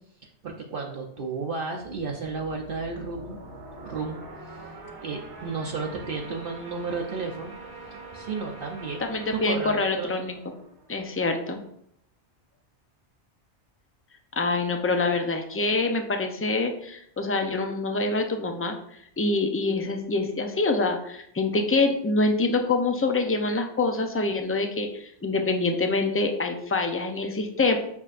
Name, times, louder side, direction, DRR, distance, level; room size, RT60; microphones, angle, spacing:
voice 1, 0.4-3.4 3.8-4.2 4.5-4.6 5.0-7.5 8.1-9.0 9.3-10.2, right 4 dB, 55° right, 1 dB, 0.8 m, -32 dB
sound 1, 1.8-11.3, right 3 dB, 90° right, 1.7 m, -44 dB
voice 2, 9.0-10.4 10.9-11.6 14.4-18.8 19.2-27.8, left 3 dB, 20° left, 4 dB, 0.3 m, -25 dB
7.1 x 5.4 x 2.5 m, 0.70 s
omnidirectional pair, 1.2 m